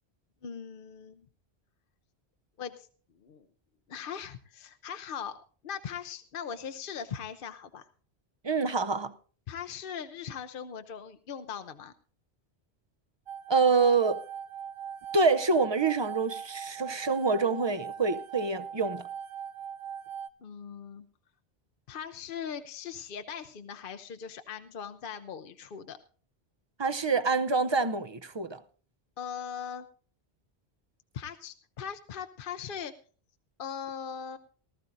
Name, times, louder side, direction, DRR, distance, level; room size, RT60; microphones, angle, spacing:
voice 1, 0.4-1.3 2.6-2.9 3.2-3.5 3.9-5.4 5.6-7.9 9.5-11.9 20.4-21.1 21.9-26.0 29.2-29.8 31.1-32.9 33.6-34.4, left 7 dB, 60° left, 0.8 m, -40 dB
voice 2, 8.4-9.1 13.5-14.2 15.1-19.1 26.8-28.6, right 4 dB, 35° right, 0.5 m, -26 dB
sound 1, 13.3-20.3, right 8 dB, 65° right, 0.9 m, -40 dB
19.0 x 13.5 x 2.5 m
omnidirectional pair, 1.1 m